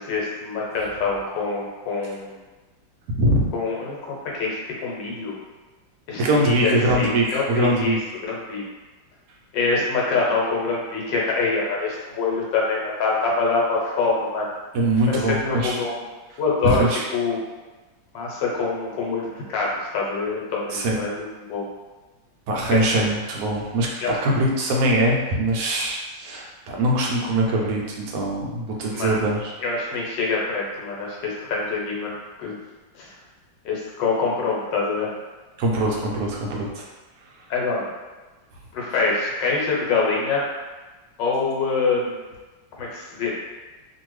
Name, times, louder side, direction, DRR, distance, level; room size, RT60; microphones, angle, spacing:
voice 1, 0.0-2.4 3.5-5.3 6.1-8.0 8.2-8.6 9.5-14.5 15.1-15.9 16.4-16.9 17.1-17.4 18.1-19.7 19.9-21.7 22.7-23.1 24.0-24.1 28.9-29.1 29.6-32.5 32.9-33.1 33.6-35.1 37.5-37.9 38.7-40.4 41.2-42.2 42.8-43.4, left 4 dB, 80° left, -3 dB, 1.3 m, -25 dB
voice 2, 3.1-3.5 6.2-8.0 14.7-15.8 16.6-17.0 20.7-21.0 22.5-29.5 35.6-36.9, right 1 dB, 65° right, -2 dB, 1.0 m, -22 dB
2.7 x 2.6 x 3.1 m, 1.2 s
omnidirectional pair, 2.0 m